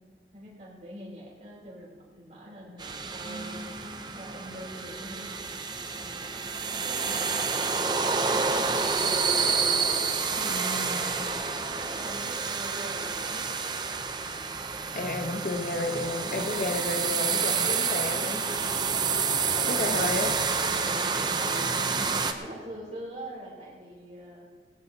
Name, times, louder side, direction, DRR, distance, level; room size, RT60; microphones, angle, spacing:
voice 1, 0.3-5.5 6.0-6.3 6.7-9.4 11.2-13.5 13.8-13.9 17.6-17.8 19.3-20.1 20.6-20.9 21.3-21.7 22.3-24.4, right 1 dB, 40° right, -4 dB, 3.8 m, -44 dB
sound 1, 2.8-22.3, right 5 dB, 25° right, 0.7 m, -29 dB
sound 2, 3.3-5.9, right 1 dB, 15° left, 3.1 m, -47 dB
voice 2, 10.4-11.2 14.9-18.4 19.7-20.4, left 2 dB, 50° left, 5 dB, 1.0 m, -32 dB
19.0 x 16.5 x 2.9 m, 1.5 s
head